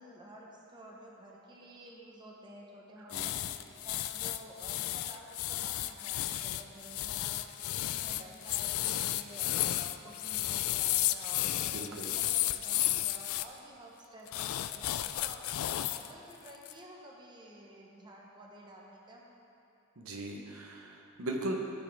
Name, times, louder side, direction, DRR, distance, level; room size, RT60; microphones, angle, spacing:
voice 1, 0.0-7.5 7.8-11.7 12.1-15.4 15.9-19.2, right 1 dB, 20° right, -2 dB, 1.0 m, -51 dB
sound 1, 3.1-13.5 14.3-16.1 16.5-16.7, left 14 dB, 75° left, 0.3 m, -33 dB
voice 2, 11.7-12.1 20.0-21.6, right 1 dB, 80° right, 1 dB, 0.9 m, -38 dB
13.5 x 6.0 x 3.4 m, 2.7 s
head